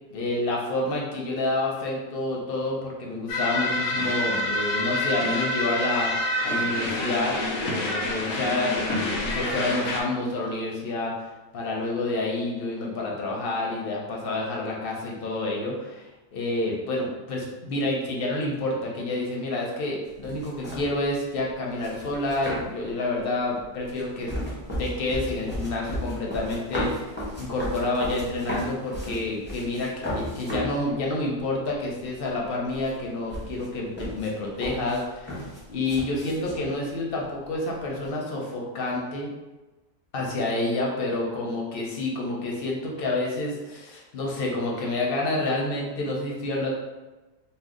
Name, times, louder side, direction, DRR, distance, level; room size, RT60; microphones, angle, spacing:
voice 1, 0.1-6.1 6.4-24.3 24.8-35.4 35.7-39.3 40.1-46.7, left 2 dB, 55° left, -2 dB, 0.7 m, -29 dB
sound 1, 3.3-10.0, left 1 dB, 85° left, 1.0 m, -27 dB
sound 2, 20.0-21.0 21.8-22.9 23.6-30.8 31.4-31.5 31.7-32.5 32.7-36.7, equal, 10° left, 0.5 m, -34 dB
2.7 x 2.1 x 3.6 m, 1.1 s
omnidirectional pair, 1.4 m